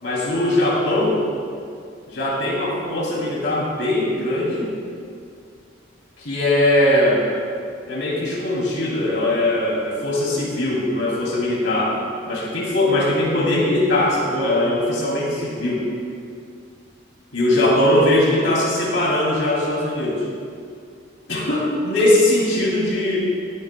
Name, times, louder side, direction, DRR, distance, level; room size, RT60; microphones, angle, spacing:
voice 1, 0.0-1.2 2.1-4.7 6.2-7.3 7.9-12.0 12.3-15.9 17.3-20.2 21.3-23.2, left 1 dB, 90° left, -4 dB, 2.8 m, -20 dB
17.5 x 9.5 x 2.3 m, 2.3 s
head